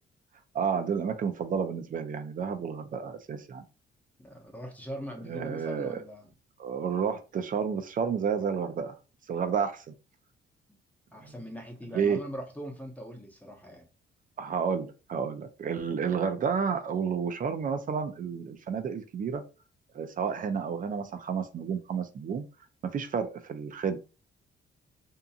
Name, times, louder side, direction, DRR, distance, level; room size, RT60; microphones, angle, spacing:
voice 1, 0.5-3.6 5.3-6.0 6.6-8.9 9.3-9.8 11.2-11.3 11.9-12.2 14.4-19.4 19.9-22.4 22.9-24.0, right 6 dB, 45° right, 0.5 m, -30 dB
voice 2, 4.2-6.3 10.7-10.8 11.1-13.9, equal, 5° left, 0.7 m, -41 dB
2.7 x 2.6 x 2.4 m
cardioid pair, 90°, 20 cm